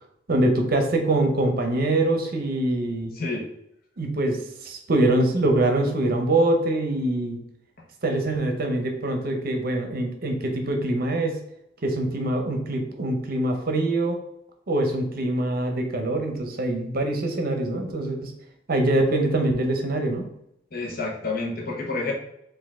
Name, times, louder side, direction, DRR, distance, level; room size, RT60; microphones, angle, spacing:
voice 1, 0.3-3.1 4.0-7.4 8.0-11.4 11.8-14.2 14.7-18.3 18.7-20.3, right 1 dB, 55° right, 4 dB, 0.7 m, -24 dB
voice 2, 20.7-22.1, left 3 dB, 55° left, 0 dB, 1.0 m, -29 dB
4.3 x 2.6 x 3.6 m, 0.77 s
head